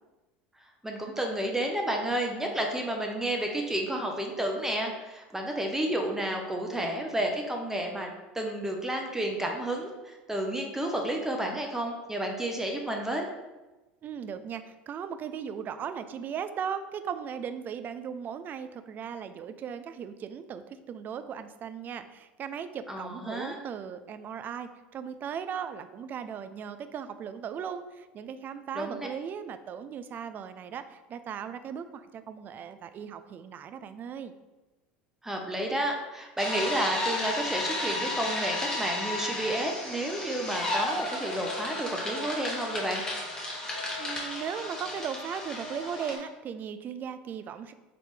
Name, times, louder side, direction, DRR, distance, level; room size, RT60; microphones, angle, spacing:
voice 1, 0.8-13.3 22.9-23.6 28.8-29.1 35.2-43.0, right 1 dB, 10° right, 1 dB, 0.6 m, -31 dB
voice 2, 14.0-34.3 44.0-47.7, right 7 dB, 40° right, 11 dB, 0.3 m, -37 dB
sound 1, 36.4-46.2, left 1 dB, 15° left, 1.3 m, -33 dB
4.0 x 3.2 x 3.2 m, 1.1 s
hypercardioid pair, 90°, 5 cm